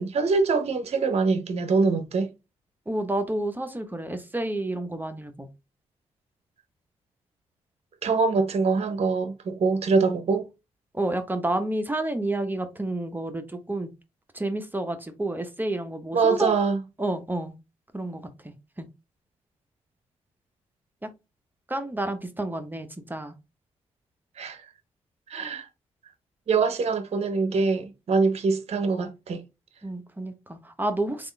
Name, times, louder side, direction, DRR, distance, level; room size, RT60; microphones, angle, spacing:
voice 1, 0.0-2.3 8.0-10.5 16.1-16.8 24.4-24.7 25.3-25.7 26.5-29.4, right 4 dB, 55° right, 0.7 m, -24 dB
voice 2, 2.9-5.5 10.9-13.9 14.3-16.5 17.0-17.5 17.9-18.9 21.0-21.1 21.7-23.4 29.8-31.3, right 1 dB, 15° right, 0.8 m, -30 dB
3.5 x 2.5 x 3.2 m
supercardioid pair, 60°, 13 cm